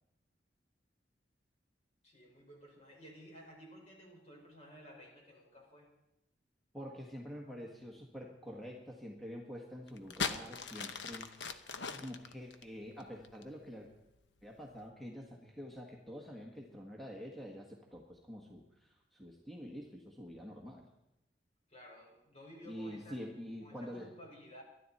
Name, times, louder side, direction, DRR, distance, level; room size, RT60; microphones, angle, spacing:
voice 1, 2.0-5.9 21.7-24.6, equal, 40° left, -1 dB, 5.3 m, -55 dB
voice 2, 6.7-11.5 11.9-13.9 14.4-20.8 22.6-24.1, equal, ahead, -1 dB, 1.5 m, -47 dB
sound 1, 9.9-13.6 14.4-14.7, left 5 dB, 80° left, 1.0 m, -39 dB
23.0 x 12.0 x 4.3 m, 0.91 s
head